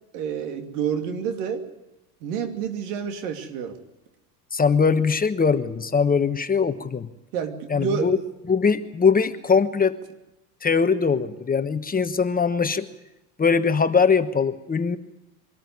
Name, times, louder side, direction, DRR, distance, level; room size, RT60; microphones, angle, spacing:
voice 1, 0.1-1.6 2.2-3.8 7.3-8.1, right 7 dB, 75° right, 6 dB, 2.8 m, -28 dB
voice 2, 4.5-7.1 7.7-8.2 8.5-10.0 10.6-12.9 13.4-15.0, left 5 dB, 20° left, 10 dB, 1.2 m, -21 dB
23.5 x 13.5 x 9.7 m, 0.96 s
supercardioid pair, 100°, 45 cm